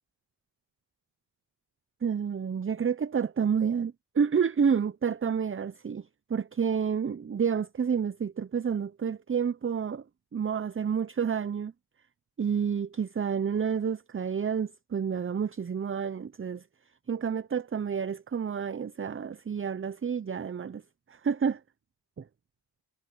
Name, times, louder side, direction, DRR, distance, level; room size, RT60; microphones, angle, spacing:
voice 1, 2.0-10.0 10.3-11.7 12.4-16.6 17.1-20.8 21.1-21.6 22.2-22.3, right 7 dB, 30° right, 0.8 m, -29 dB
supercardioid pair, 50°, 44 cm